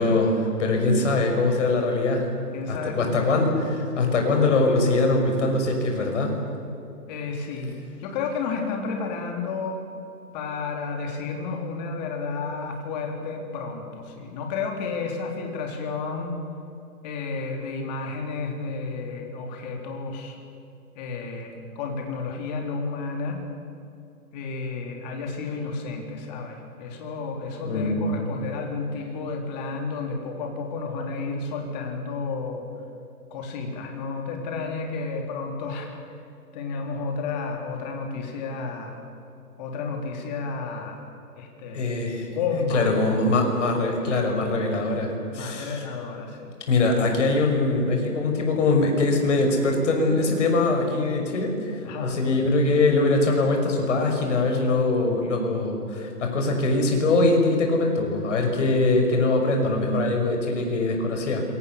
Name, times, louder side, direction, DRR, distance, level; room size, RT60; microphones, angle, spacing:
voice 1, 0.0-2.3 2.7-6.3 27.6-28.1 41.7-42.3 42.7-45.8 46.7-61.4, left 2 dB, 45° left, 2 dB, 6.3 m, -22 dB
voice 2, 2.5-4.1 7.1-7.7 8.0-9.8 10.3-16.3 17.0-20.4 21.0-23.4 24.3-32.6 33.3-35.9 36.5-39.0 39.6-41.0 41.3-42.0 42.3-42.9 45.3-46.5 51.8-52.2, left 4 dB, 25° left, 2 dB, 3.9 m, -31 dB
27.5 x 23.5 x 7.1 m, 2.7 s
hypercardioid pair, 150°, 48 cm